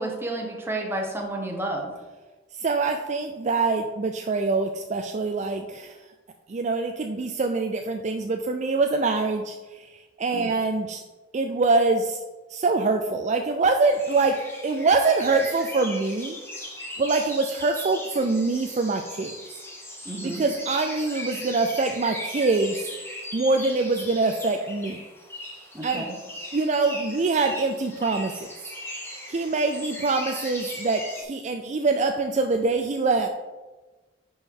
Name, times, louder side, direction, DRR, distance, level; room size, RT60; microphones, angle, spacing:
voice 1, 0.0-1.9 10.3-10.5 20.0-20.4 25.7-26.2, right 1 dB, 15° right, 1 dB, 1.1 m, -31 dB
voice 2, 2.6-6.0 6.5-9.6 10.2-11.0 11.3-12.2 12.5-14.4 14.6-16.4 17.0-19.3 20.2-22.8 23.3-25.0 25.8-26.1 26.5-28.5 29.3-33.3, right 3 dB, 40° right, 5 dB, 0.4 m, -24 dB
sound 1, 13.9-31.2, left 1 dB, 15° left, 1.2 m, -38 dB
10.5 x 4.6 x 3.7 m, 1.2 s
head